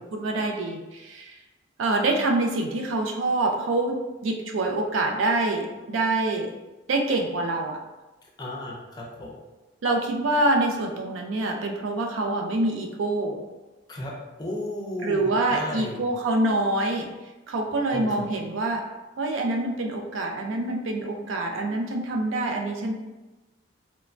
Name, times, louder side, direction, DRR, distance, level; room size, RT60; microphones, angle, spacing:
voice 1, 0.1-1.4 1.8-6.5 6.9-7.8 9.8-13.4 15.0-17.1 17.5-18.8 19.2-22.9, right 2 dB, 85° right, 3 dB, 0.4 m, -26 dB
voice 2, 8.4-9.3 13.9-14.1 14.4-16.0 17.9-18.2, left 1 dB, 20° left, -3 dB, 0.4 m, -34 dB
3.0 x 2.1 x 2.4 m, 1.1 s
head